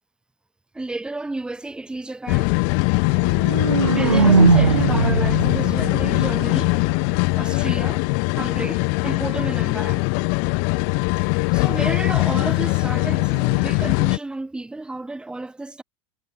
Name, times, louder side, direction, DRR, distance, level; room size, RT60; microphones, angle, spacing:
voice 1, 0.7-2.6 3.9-6.8 7.4-8.0 8.4-10.1 11.2-15.8, right 2 dB, 5° right, 0.8 m, -31 dB
sound 1, 2.3-14.2, left 40 dB or more, 45° left, 0.5 m, -21 dB
sound 2, 3.2-7.2, right 5 dB, 85° right, 0.5 m, -20 dB
figure-of-eight pair, 80°, 15 cm